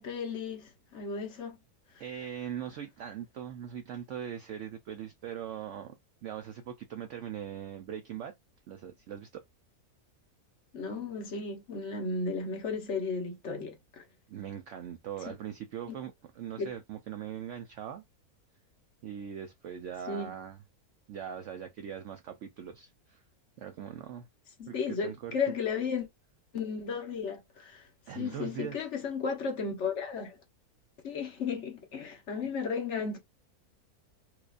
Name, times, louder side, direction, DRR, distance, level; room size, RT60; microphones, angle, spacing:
voice 1, 0.0-1.6 10.7-14.0 15.3-15.4 16.6-16.7 20.1-20.3 24.6-26.1 26.5-27.9 28.1-30.4 31.0-33.2, left 5 dB, 50° left, 1.2 m, -34 dB
voice 2, 2.0-5.9 6.2-8.3 8.7-9.4 14.3-18.0 19.0-20.6 21.1-23.2 23.6-24.3 24.7-24.8 25.0-25.3 28.1-28.8, right 9 dB, 65° right, 0.7 m, -41 dB
4.6 x 2.4 x 2.4 m
omnidirectional pair, 1.6 m